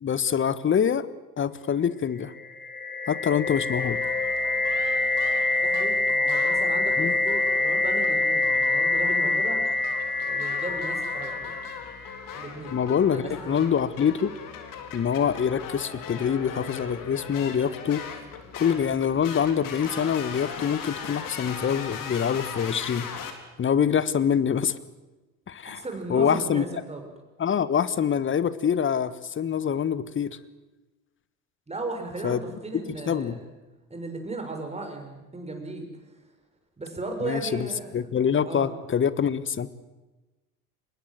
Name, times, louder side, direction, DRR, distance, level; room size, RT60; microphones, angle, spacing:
voice 1, 0.0-1.1 1.4-2.3 3.1-4.0 7.0-7.1 12.7-14.3 14.9-18.0 18.6-23.1 23.6-24.7 25.5-25.8 26.1-26.6 27.4-30.4 32.2-32.4 33.1-33.4 37.2-37.7 37.9-39.7, left 8 dB, 25° left, 16 dB, 1.5 m, -25 dB
sound 1, 2.4-12.2, left 2 dB, 90° left, 1.7 m, -25 dB
sound 2, 3.5-23.3, left 7 dB, 45° left, 4.0 m, -39 dB
voice 2, 5.6-9.6 10.2-11.6 12.3-12.8 13.1-13.7 25.7-27.1 31.7-33.4 33.9-35.9 36.8-38.1 38.4-38.7, right 2 dB, 15° right, 4 dB, 6.7 m, -36 dB
25.0 x 20.5 x 7.8 m, 1.1 s
figure-of-eight pair, 70°, 44 cm